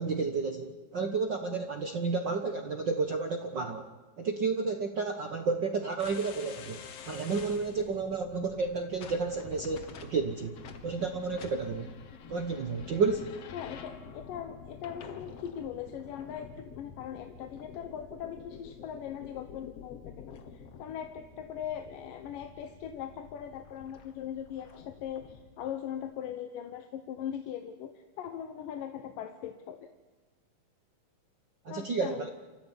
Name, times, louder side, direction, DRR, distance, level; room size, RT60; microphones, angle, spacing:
voice 1, 0.0-3.9 4.2-11.9 12.3-13.3 31.6-32.3, right 4 dB, 60° right, 5 dB, 1.1 m, -31 dB
sound 1, 6.0-25.7, left 6 dB, 55° left, 2.3 m, -48 dB
voice 2, 13.5-29.9 31.7-32.3, left 9 dB, 80° left, 7 dB, 2.8 m, -40 dB
29.0 x 14.0 x 10.0 m, 1.3 s
omnidirectional pair, 3.8 m